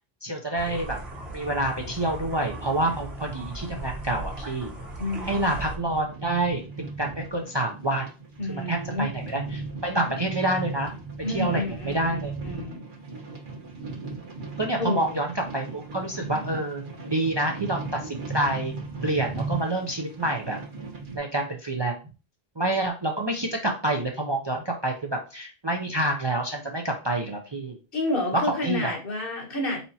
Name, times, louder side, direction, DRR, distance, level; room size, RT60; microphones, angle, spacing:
voice 1, 0.2-1.0 1.3-4.7 5.2-6.6 7.0-8.1 8.5-10.9 11.3-12.3 14.6-18.7 19.0-20.6 21.1-22.0 22.6-27.8 28.3-28.9, right 1 dB, 30° right, 2 dB, 0.5 m, -27 dB
sound 1, 0.6-5.8, right 1 dB, 75° right, 1.4 m, -37 dB
sound 2, 2.0-21.2, right 3 dB, 55° right, 1.2 m, -38 dB
voice 2, 5.0-5.4 8.4-9.1 11.2-12.8 14.8-15.2 27.9-29.8, left 2 dB, 60° left, -2 dB, 1.6 m, -29 dB
4.3 x 4.2 x 2.8 m, 0.32 s
omnidirectional pair, 1.0 m